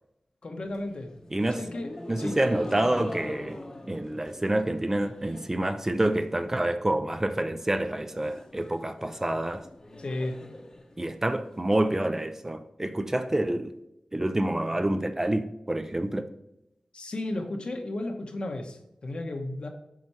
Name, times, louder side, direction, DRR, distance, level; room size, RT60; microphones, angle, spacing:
voice 1, 0.4-1.1 1.5-2.4 10.0-10.4 16.9-19.7, left 1 dB, 55° left, 1.0 m, -34 dB
sound 1, 0.6-5.7 5.9-6.5 6.8-6.9 7.1-7.2 7.5-11.5, left 1 dB, 30° left, 0.9 m, -44 dB
voice 2, 1.3-1.6 2.1-3.6 3.9-9.7 11.0-13.7 14.1-16.3, right 1 dB, 20° right, 0.4 m, -27 dB
7.6 x 4.4 x 4.3 m
wide cardioid pair, 105°, 2 cm